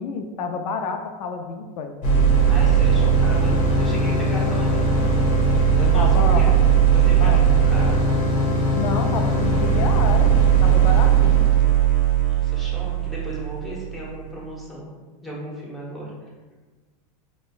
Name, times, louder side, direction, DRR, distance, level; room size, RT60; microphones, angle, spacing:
voice 1, 0.0-1.9 5.9-6.6 7.2-7.5 8.7-11.4, left 5 dB, 75° left, 5 dB, 0.4 m, -29 dB
sound 1, 2.0-13.9, right 6 dB, 40° left, 0.8 m, -18 dB
voice 2, 2.5-5.3 5.6-6.6 6.9-8.0 12.2-14.9 15.2-16.1, equal, ahead, -6 dB, 0.9 m, -35 dB
5.0 x 2.2 x 2.4 m, 1.3 s
supercardioid pair, 125°, 20 cm